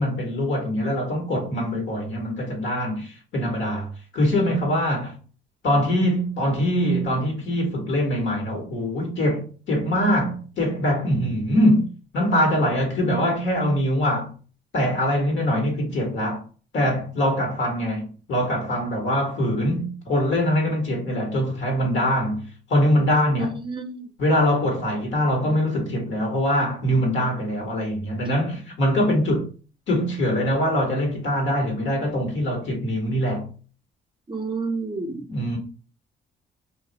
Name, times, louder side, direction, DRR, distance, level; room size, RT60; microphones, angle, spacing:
voice 1, 0.0-5.2 5.6-11.9 12.1-14.3 14.7-16.4 16.7-23.6 24.2-29.5 29.9-33.5 35.3-35.6, equal, 70° left, 1.3 m, -23 dB
voice 2, 23.4-24.1 34.3-35.2, right 4 dB, 25° right, 0.6 m, -30 dB
2.5 x 2.4 x 3.9 m
cardioid pair, 90°, 20 cm